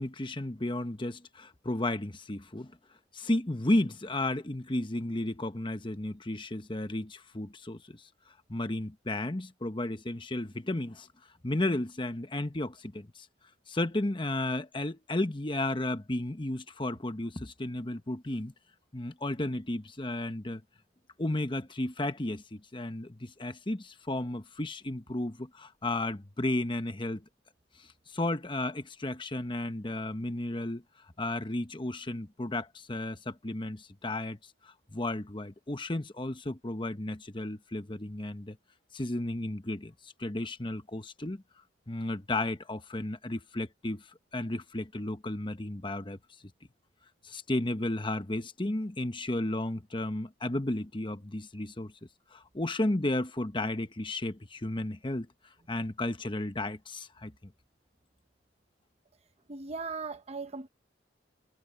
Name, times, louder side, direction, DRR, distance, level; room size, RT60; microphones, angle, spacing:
voice 1, 0.0-2.7 3.1-8.0 8.5-11.1 11.4-13.1 13.7-18.5 18.9-20.6 21.2-27.2 27.8-30.8 31.2-34.4 34.6-38.6 38.9-39.9 40.2-41.4 41.9-44.0 44.3-46.2 47.2-51.9 52.3-55.3 55.7-57.3, left 1 dB, 25° left, 1.1 m, -33 dB
voice 2, 59.5-60.7, right 4 dB, 35° right, 0.8 m, -38 dB
head